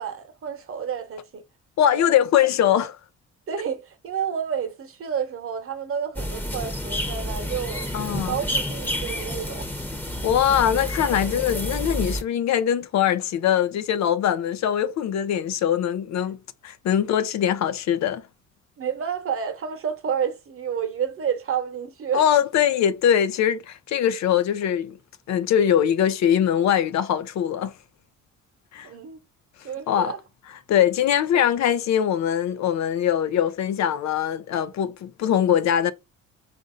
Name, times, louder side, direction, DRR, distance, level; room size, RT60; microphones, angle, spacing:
voice 1, 0.0-1.4 1.9-2.2 3.5-7.9 8.2-9.7 18.8-22.2 28.8-29.2 29.6-30.2, right 7 dB, 45° right, 1.0 m, -30 dB
voice 2, 1.8-3.0 7.9-8.4 10.2-16.4 16.6-18.2 22.1-25.0 25.3-27.7 28.7-28.9 29.9-30.1 30.7-35.9, left 9 dB, 65° left, 0.5 m, -22 dB
sound 1, 6.2-12.2, equal, 5° left, 0.8 m, -29 dB
4.0 x 2.6 x 3.8 m
cardioid pair, 90°, 30 cm